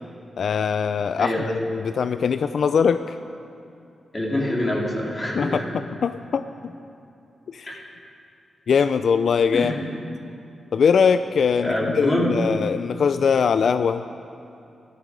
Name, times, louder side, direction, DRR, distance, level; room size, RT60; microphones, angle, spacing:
voice 1, 0.4-1.3 1.7-3.2 5.3-5.6 6.0-6.4 7.5-7.7 8.7-9.7 10.7-14.0, left 6 dB, 70° left, 11 dB, 0.4 m, -21 dB
voice 2, 4.1-5.6 7.6-7.8 9.5-9.8 11.6-12.3, left 1 dB, 25° left, -4 dB, 3.4 m, -25 dB
13.5 x 13.5 x 5.2 m, 2.6 s
cardioid pair, 55°, 0 cm